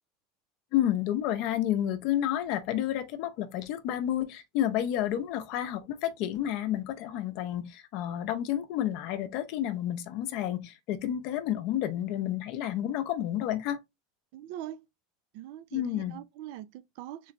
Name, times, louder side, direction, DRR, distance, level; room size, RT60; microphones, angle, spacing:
voice 1, 0.7-13.8 15.7-16.2, left 11 dB, 60° left, 0.6 m, -30 dB
voice 2, 14.3-14.8 15.3-17.3, right 12 dB, 65° right, 0.3 m, -42 dB
3.8 x 3.2 x 2.5 m
supercardioid pair, 120°, 0 cm